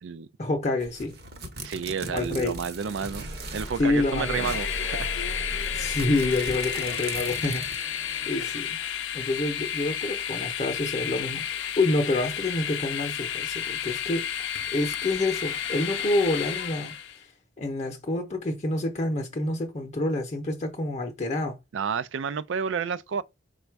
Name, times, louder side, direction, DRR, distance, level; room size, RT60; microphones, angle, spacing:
voice 1, 0.4-1.2 2.1-2.6 3.8-4.6 5.7-8.0 8.3-8.8 9.1-14.3 14.7-16.9 17.6-21.6, left 2 dB, 35° left, 0.6 m, -28 dB
sound 1, 0.8-3.8 4.1-4.2 4.4-8.0, right 3 dB, 60° right, 0.9 m, -40 dB
voice 2, 1.6-5.1 21.7-23.2, right 6 dB, 80° right, 0.4 m, -31 dB
sound 2, 2.9-8.7, equal, 35° right, 0.8 m, -39 dB
Train, 3.7-17.2, left 9 dB, 85° left, 0.5 m, -32 dB
5.0 x 2.3 x 4.5 m
head